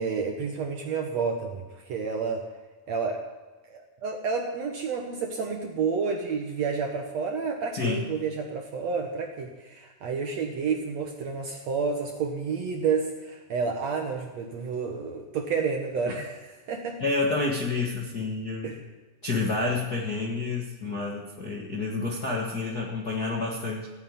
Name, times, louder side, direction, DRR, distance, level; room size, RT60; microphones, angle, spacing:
voice 1, 0.0-2.4 2.9-3.2 3.7-17.0 18.6-18.8, right 5 dB, 60° right, 2 dB, 1.9 m, -30 dB
voice 2, 7.7-8.1 16.1-16.2 17.0-18.8 19.2-23.9, left 3 dB, 45° left, -4 dB, 1.2 m, -29 dB
15.5 x 8.8 x 9.3 m, 1.2 s
omnidirectional pair, 4.3 m